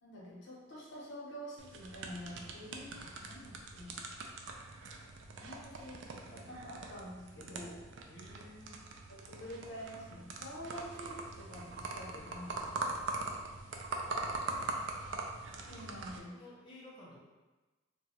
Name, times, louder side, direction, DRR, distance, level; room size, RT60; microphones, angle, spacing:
voice 1, 0.0-3.9 5.3-7.8 9.1-13.0 15.7-16.4, equal, 80° left, -6 dB, 0.9 m, -47 dB
sound 1, 1.6-16.2, right 3 dB, 75° right, 0.3 m, -42 dB
voice 2, 8.1-8.7 14.0-14.9 15.7-15.9 16.3-17.2, left 1 dB, 25° left, -7 dB, 0.6 m, -55 dB
2.8 x 2.2 x 2.7 m, 1.2 s
head